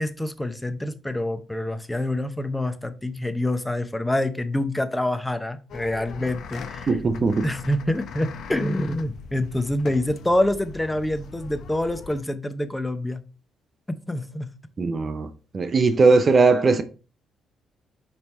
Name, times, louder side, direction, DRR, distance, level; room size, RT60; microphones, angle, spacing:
voice 1, 0.0-6.9 7.4-13.2 13.9-14.5, left 1 dB, 10° left, 0.6 m, -26 dB
sound 1, 5.7-12.2, left 6 dB, 70° left, 0.7 m, -40 dB
voice 2, 6.9-7.5 14.8-15.3 15.5-16.8, right 4 dB, 35° right, 0.6 m, -19 dB
5.3 x 4.6 x 4.2 m
cardioid pair, 110°, 0 cm